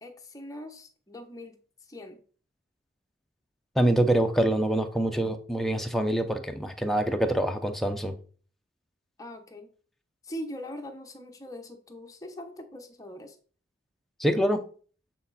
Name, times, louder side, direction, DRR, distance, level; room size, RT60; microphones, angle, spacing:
voice 1, 0.0-2.2 9.2-9.7 10.2-13.4, left 1 dB, 15° left, 0.9 m, -42 dB
voice 2, 3.8-8.1 14.2-14.6, right 1 dB, ahead, 0.5 m, -25 dB
8.4 x 4.1 x 4.0 m
head